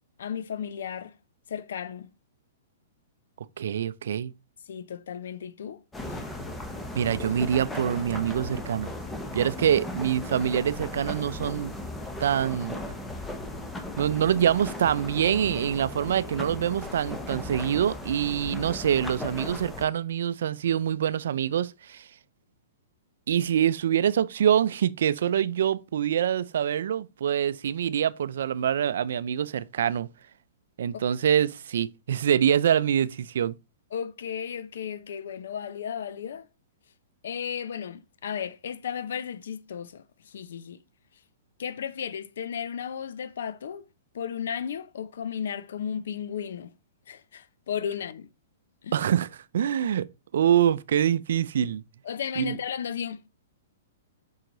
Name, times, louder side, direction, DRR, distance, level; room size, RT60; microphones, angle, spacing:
voice 1, 0.2-1.1 1.5-2.1 4.7-5.8 6.1-6.2 33.9-36.5 37.2-40.8 41.6-43.8 44.1-46.7 47.1-48.3 48.8-49.0 52.0-53.3, left 8 dB, 75° left, 0.7 m, -34 dB
voice 2, 3.6-4.3 6.9-8.9 9.3-11.7 12.2-12.8 14.0-22.0 23.3-30.1 30.8-33.6 48.9-49.3 49.5-50.1 50.3-51.8 52.4-52.6, right 9 dB, 75° right, 0.4 m, -25 dB
sound 1, 5.9-19.9, left 1 dB, 5° left, 0.9 m, -36 dB
5.6 x 4.6 x 3.8 m
hypercardioid pair, 145°, 0 cm